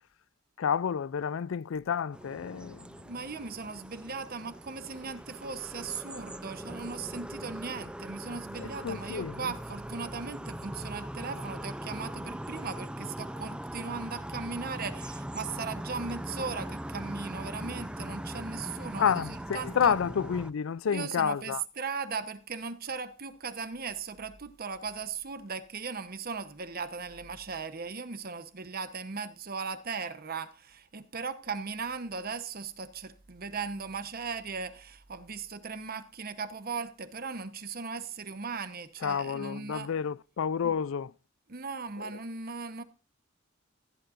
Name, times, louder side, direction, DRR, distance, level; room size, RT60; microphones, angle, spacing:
voice 1, 0.6-2.9 8.6-9.5 19.0-21.6 39.0-41.1 42.0-42.1, left 7 dB, 75° left, 0.4 m, -30 dB
sound 1, 2.1-20.5, right 1 dB, 5° right, 0.5 m, -40 dB
voice 2, 3.0-20.0 20.9-39.9 40.6-40.8 41.5-42.8, right 5 dB, 50° right, 1.0 m, -38 dB
15.5 x 10.5 x 2.5 m
head